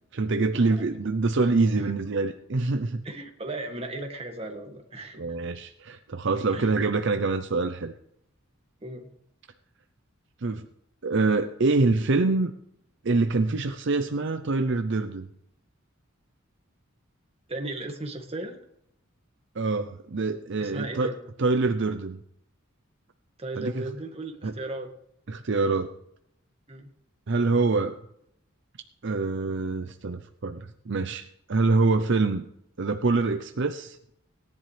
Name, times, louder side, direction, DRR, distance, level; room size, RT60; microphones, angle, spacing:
voice 1, 0.1-3.0 5.2-7.9 10.4-10.7 11.0-12.5 13.0-15.3 19.6-21.1 21.4-22.2 23.6-23.8 24.4-24.5 25.3-25.9 27.3-28.0 29.0-32.5 32.8-34.0, right 3 dB, 60° right, 8 dB, 0.6 m, -25 dB
voice 2, 3.0-5.4 6.5-6.8 8.8-9.1 17.5-18.6 20.6-21.2 23.4-24.9 26.7-26.9, right 2 dB, 30° right, 3 dB, 1.8 m, -36 dB
18.5 x 10.5 x 3.3 m, 0.74 s
head